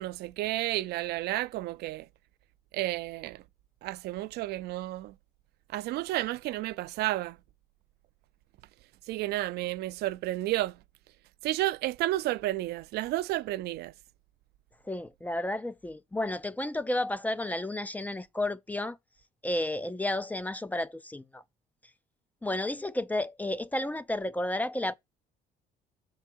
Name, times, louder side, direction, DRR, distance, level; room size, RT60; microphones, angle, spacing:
voice 1, 0.0-2.1 2.7-3.4 3.8-5.1 5.7-7.4 9.1-10.8 11.4-13.9, right 16 dB, 75° right, 0.4 m, -31 dB
voice 2, 14.9-19.0 19.4-21.4 22.4-24.9, left 1 dB, 10° left, 0.4 m, -32 dB
6.7 x 4.6 x 4.4 m
cardioid pair, 110°, 17 cm